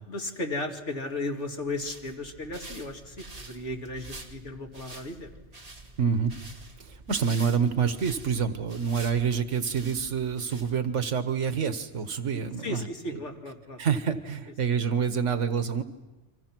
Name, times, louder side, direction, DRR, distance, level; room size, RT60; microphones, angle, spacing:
voice 1, 0.1-5.3 12.6-13.8, left 2 dB, 80° left, 1 dB, 2.8 m, -35 dB
sound 1, 1.7-11.1, right 2 dB, 30° right, 1.9 m, -47 dB
voice 2, 6.0-6.3 6.8-12.9 13.8-15.8, right 6 dB, 85° right, 9 dB, 1.5 m, -27 dB
30.0 x 25.0 x 6.1 m, 1.1 s
omnidirectional pair, 1.2 m